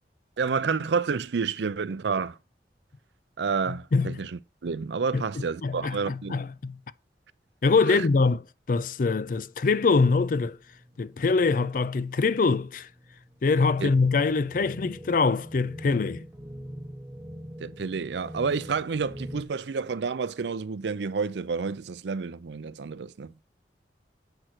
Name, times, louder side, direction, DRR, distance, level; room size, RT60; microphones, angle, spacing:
voice 1, 0.4-2.4 3.4-6.4 7.9-8.1 13.8-13.9 17.6-23.3, right 5 dB, 80° right, 0.5 m, -29 dB
voice 2, 5.6-6.8 7.6-8.4 8.7-10.6 11.0-12.9 13.4-16.2, left 4 dB, 50° left, 0.4 m, -24 dB
sound 1, 9.4-19.4, equal, 15° right, 0.9 m, -44 dB
7.7 x 6.1 x 4.4 m
head